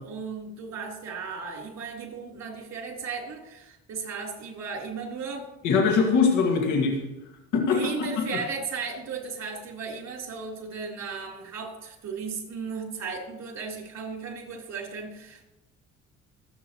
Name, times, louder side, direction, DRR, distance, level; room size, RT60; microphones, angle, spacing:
voice 1, 0.0-5.5 7.7-15.5, right 5 dB, 60° right, -1 dB, 3.9 m, -35 dB
voice 2, 5.6-7.0 7.5-8.2, left 5 dB, 85° left, 1 dB, 2.0 m, -22 dB
26.0 x 8.6 x 3.1 m, 0.93 s
cardioid pair, 90°, 30 cm